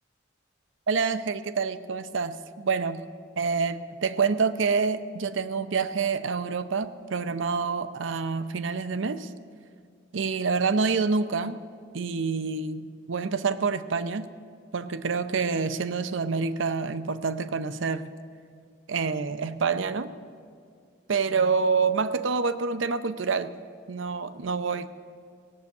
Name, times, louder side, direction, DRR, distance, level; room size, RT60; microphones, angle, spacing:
voice 1, 0.9-3.0 3.4-9.3 10.1-11.6 11.9-14.3 14.7-18.1 18.9-20.1 21.1-23.5 23.9-24.9, right 5 dB, 75° right, 12 dB, 0.6 m, -27 dB
17.5 x 6.8 x 8.2 m, 2.3 s
head